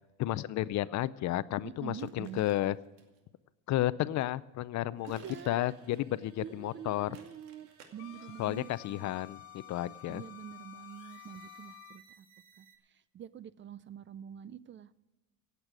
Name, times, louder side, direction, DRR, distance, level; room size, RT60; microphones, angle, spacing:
voice 1, 0.2-2.7 3.7-7.1 8.4-10.2, left 14 dB, 45° left, 17 dB, 0.5 m, -32 dB
voice 2, 1.6-2.4 5.1-5.7 6.4-9.2 10.1-12.3 12.6-15.0, right 9 dB, 30° right, 17 dB, 0.4 m, -46 dB
sound 1, 1.9-3.2 5.0-6.2 7.1-7.9, right 6 dB, 80° right, 2.5 m, -58 dB
sound 2, 5.0-12.8, right 6 dB, 55° right, 2.6 m, -61 dB
Wind instrument woodwind instrument, 8.0-12.1, left 16 dB, 90° left, 0.7 m, -52 dB
17.0 x 8.2 x 6.1 m, 1.1 s
cardioid pair, 120°, 39 cm